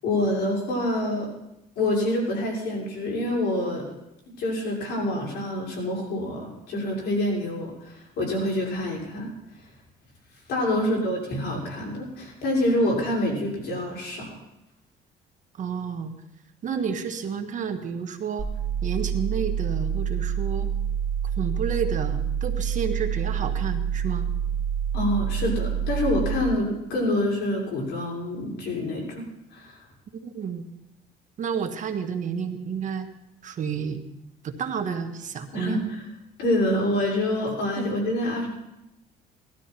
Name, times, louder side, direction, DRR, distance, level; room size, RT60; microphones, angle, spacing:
voice 1, 0.0-1.3 1.8-3.8 4.4-9.3 10.5-14.3 24.9-29.2 29.5-29.7 35.5-35.8 36.4-38.5, left 1 dB, 75° left, -2 dB, 6.2 m, -26 dB
voice 2, 10.8-11.1 15.6-16.1 16.6-18.5 18.8-20.7 21.4-24.3 30.2-30.6 31.4-33.1 33.4-34.0 34.4-35.8 37.8-37.9, right 7 dB, 50° right, 5 dB, 1.5 m, -30 dB
sound 1, 18.4-26.4, right 8 dB, 15° right, 2.1 m, -27 dB
18.5 x 12.5 x 4.5 m, 0.87 s
cardioid pair, 110°, 17 cm